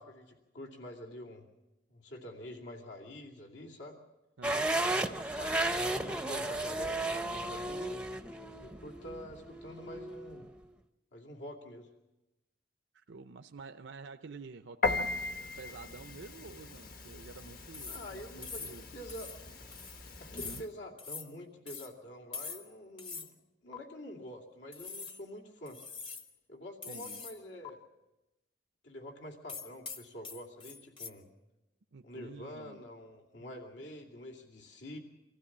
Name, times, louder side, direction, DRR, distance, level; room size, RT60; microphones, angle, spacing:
voice 1, 0.0-1.5 1.9-4.0 4.8-8.1 8.6-10.5 11.1-11.9 17.9-19.3 20.2-23.3 23.6-25.8 26.5-27.8 28.8-31.3 32.0-35.0, equal, 75° left, 0 dB, 2.6 m, -47 dB
sound 1, 4.4-10.5, right 1 dB, 5° right, 0.6 m, -34 dB
voice 2, 4.4-4.7 12.9-15.2 15.6-18.9 20.4-20.6 26.9-27.2 31.9-32.8 33.4-33.6, right 4 dB, 80° right, 7 dB, 0.6 m, -50 dB
Piano, 14.8-20.7, left 3 dB, 50° left, 1.2 m, -38 dB
sound 2, 17.7-18.1 18.4-18.8 19.1-19.4 19.7-20.0 20.4-20.7 21.0-21.3 21.7-21.9 22.3-22.7 23.0-23.3 23.7-23.8 24.7-25.2 25.7-26.3 26.8-27.4 27.6-27.7 29.5-31.1, left 5 dB, 25° left, 0.9 m, -43 dB
24.5 x 15.5 x 7.3 m, 0.99 s
head